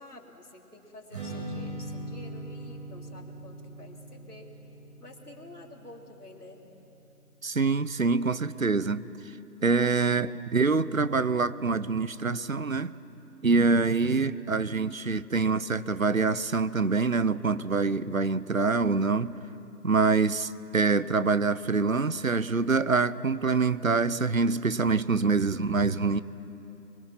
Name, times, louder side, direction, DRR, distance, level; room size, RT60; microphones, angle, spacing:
voice 1, 0.0-4.5 5.0-6.6, left 1 dB, 70° left, 1 dB, 3.7 m, -49 dB
Strum, 1.1-7.4, right 1 dB, 25° right, 5.2 m, -41 dB
voice 2, 7.4-9.4 9.6-12.9 13.4-19.4 19.8-26.2, right 4 dB, 60° right, 16 dB, 0.7 m, -25 dB
23.5 x 22.5 x 5.9 m, 2.9 s
figure-of-eight pair, 180°, 47 cm